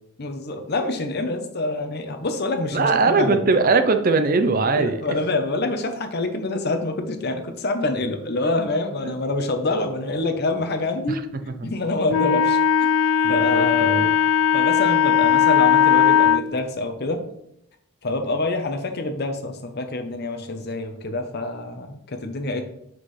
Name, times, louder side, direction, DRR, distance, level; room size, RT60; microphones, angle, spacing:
voice 1, 0.2-3.4 4.8-12.9 13.3-14.1 14.5-17.2 18.0-22.6, left 2 dB, 45° left, 6 dB, 0.8 m, -26 dB
voice 2, 2.7-5.0 9.0-9.1 11.1-11.2 11.6-11.7 13.2-14.1, right 4 dB, 40° right, 8 dB, 0.5 m, -20 dB
Wind instrument woodwind instrument, 12.1-16.5, left 8 dB, 85° left, 0.3 m, -18 dB
7.6 x 6.0 x 3.2 m, 0.77 s
head